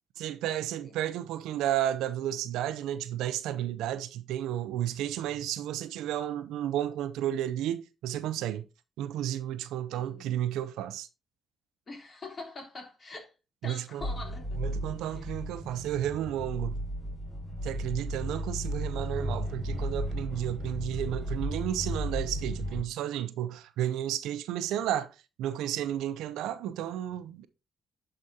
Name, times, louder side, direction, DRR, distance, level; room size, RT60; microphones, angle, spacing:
voice 1, 0.2-8.7 9.0-11.1 13.6-14.0 14.6-16.8 17.6-27.5, right 11 dB, 90° right, 0.6 m, -32 dB
voice 2, 9.9-10.3 11.9-13.3 13.6-14.5 15.1-15.3, left 3 dB, 45° left, 3.3 m, -44 dB
sound 1, 14.0-22.8, equal, 30° left, 5.1 m, -34 dB
11.5 x 5.0 x 2.8 m
supercardioid pair, 65°, 0 cm